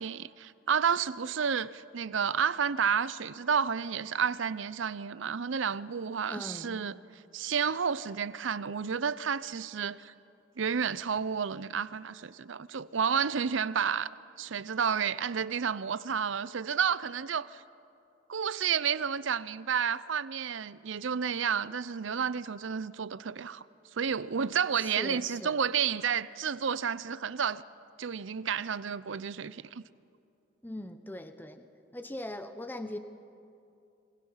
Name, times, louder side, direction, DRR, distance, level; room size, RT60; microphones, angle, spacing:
voice 1, 0.0-7.0 7.3-10.1 10.6-17.6 18.3-23.6 23.9-27.6 28.0-29.8, right 7 dB, 75° right, 0.6 m, -31 dB
voice 2, 6.3-6.8 24.7-25.6 30.6-31.7 31.9-33.0, left 1 dB, 10° left, 0.8 m, -40 dB
29.0 x 24.5 x 5.7 m
head